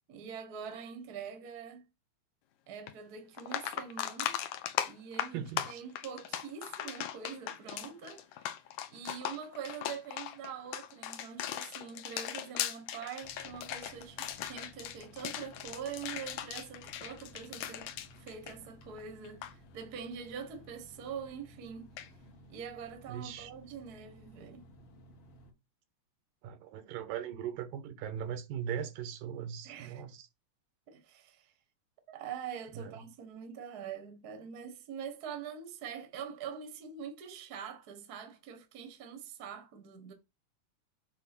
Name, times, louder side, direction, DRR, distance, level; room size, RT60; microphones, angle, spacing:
voice 1, 0.1-1.9 2.7-4.4 4.9-8.5 8.9-17.9 18.2-21.9 22.5-24.7 29.6-30.0 30.9-31.5 32.1-40.1, right 7 dB, 50° right, 1.1 m, -44 dB
sound 1, 2.9-3.0 3.4-19.0 19.2-19.5 22.0-22.1, left 11 dB, 75° left, 2.1 m, -38 dB
voice 2, 5.3-5.8 23.1-23.5 26.4-30.3 32.8-32.9, right 9 dB, 90° right, 2.7 m, -39 dB
sound 2, 13.2-25.5, equal, 50° left, 2.3 m, -57 dB
7.6 x 3.7 x 6.0 m
omnidirectional pair, 3.8 m